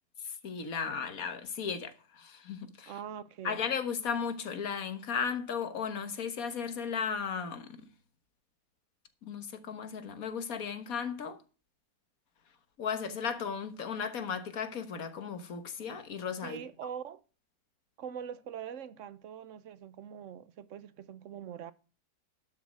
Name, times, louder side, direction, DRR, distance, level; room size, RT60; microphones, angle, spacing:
voice 1, 0.3-2.9 3.4-7.7 9.2-11.4 12.8-16.6, left 6 dB, 65° left, 1.7 m, -35 dB
voice 2, 2.9-3.6 16.4-17.2 18.0-21.7, right 8 dB, 60° right, 1.0 m, -43 dB
12.0 x 6.3 x 6.3 m
omnidirectional pair, 1.7 m